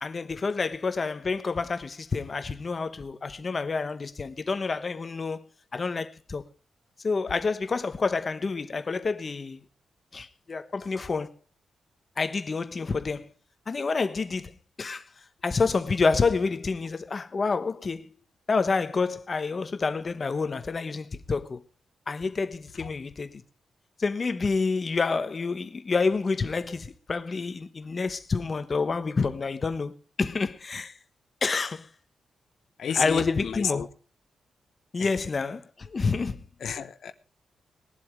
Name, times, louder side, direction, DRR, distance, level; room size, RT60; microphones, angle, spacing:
voice 1, 0.0-5.4 5.7-6.4 7.0-9.6 10.1-11.3 12.2-13.3 13.7-14.5 14.8-15.0 15.4-18.1 18.5-21.6 22.1-23.4 24.0-29.9 30.2-30.9 31.4-31.9 33.0-33.8 34.9-36.4, left 4 dB, 30° left, 1.0 m, -28 dB
voice 2, 32.8-33.9 35.0-35.3 36.6-37.1, left 7 dB, 55° left, 1.0 m, -31 dB
20.0 x 7.8 x 5.0 m
wide cardioid pair, 175°, 0 cm